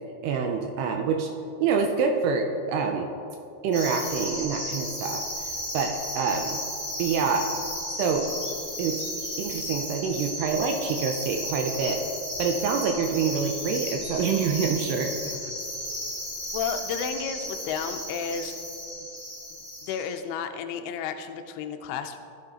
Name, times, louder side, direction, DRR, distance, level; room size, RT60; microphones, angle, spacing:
voice 1, 0.2-1.3 1.6-3.1 3.6-5.2 5.7-6.6 7.0-7.5 8.0-8.3 8.8-9.0 9.4-12.0 12.4-15.4, right 5 dB, 80° right, 3 dB, 2.5 m, -26 dB
sound 1, 3.7-20.1, left 1 dB, 10° right, 0.7 m, -34 dB
voice 2, 16.5-18.6 19.8-22.3, left 6 dB, 80° left, 6 dB, 2.3 m, -32 dB
14.5 x 7.7 x 2.9 m, 2.7 s
omnidirectional pair, 4.9 m